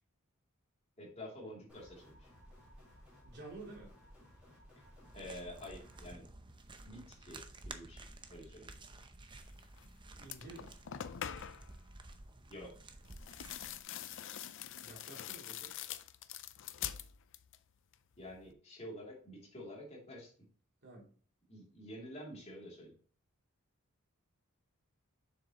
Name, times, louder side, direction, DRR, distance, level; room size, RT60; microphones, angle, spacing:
voice 1, 1.0-2.3 5.1-6.2 6.8-8.0 8.3-8.7 12.5-12.7 18.2-20.3 21.5-22.9, equal, 30° left, -3 dB, 2.8 m, -49 dB
sound 1, 1.7-6.1, equal, 5° right, 3.8 m, -58 dB
voice 2, 3.2-3.9 10.2-10.7 14.8-15.7 20.8-21.1, right 2 dB, 50° right, -2 dB, 3.0 m, -51 dB
sound 2, 5.0-13.8, right 2 dB, 20° right, 0.7 m, -53 dB
sound 3, 9.8-9.9 10.2-11.7 13.1-17.6 17.9-18.5, left 10 dB, 60° left, 0.5 m, -45 dB
7.4 x 6.4 x 3.0 m, 0.43 s
head